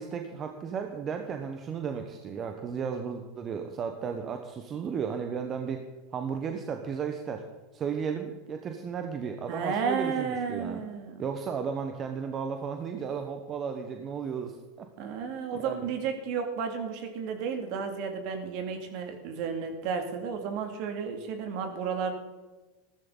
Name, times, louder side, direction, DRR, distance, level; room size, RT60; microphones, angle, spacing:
voice 1, 0.0-5.8 6.1-7.4 7.7-10.8 11.2-14.9 15.5-15.9, right 6 dB, 35° right, 5 dB, 1.2 m, -34 dB
voice 2, 9.5-11.2 15.0-22.1, right 6 dB, 55° right, 5 dB, 2.5 m, -32 dB
14.5 x 13.5 x 4.0 m, 1.2 s
hypercardioid pair, 95°, 0 cm